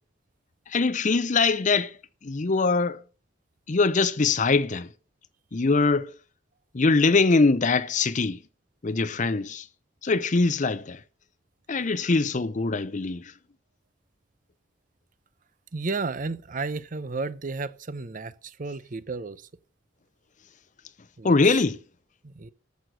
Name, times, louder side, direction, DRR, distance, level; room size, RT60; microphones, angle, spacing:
voice 1, 0.7-2.0 2.2-3.0 3.7-4.9 5.5-6.1 6.7-8.4 8.8-9.7 10.0-11.0 11.7-13.3 21.2-21.8, left 3 dB, 45° left, 0.6 m, -23 dB
voice 2, 15.7-19.4 21.2-21.6 22.2-22.5, right 3 dB, 45° right, 0.7 m, -33 dB
14.0 x 6.4 x 6.5 m
head